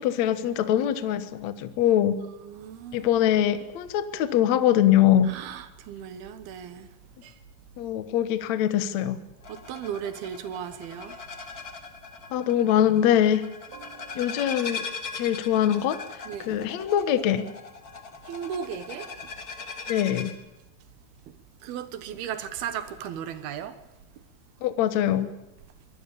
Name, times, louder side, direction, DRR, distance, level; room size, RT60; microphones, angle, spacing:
voice 1, 0.0-2.2 2.9-5.3 7.8-9.2 12.3-13.4 14.2-14.8 15.1-16.0 16.5-17.5 19.9-20.3 24.6-25.3, left 11 dB, 60° left, 2.1 m, -23 dB
voice 2, 2.2-3.2 5.2-6.9 7.2-7.4 9.5-11.2 11.5-11.7 13.7-14.3 16.3-16.6 18.2-19.2 21.3-21.4 21.6-23.8, right 8 dB, 80° right, 3.3 m, -36 dB
sound 1, 9.4-20.4, left 4 dB, 35° left, 1.7 m, -40 dB
24.0 x 19.0 x 6.9 m
omnidirectional pair, 4.4 m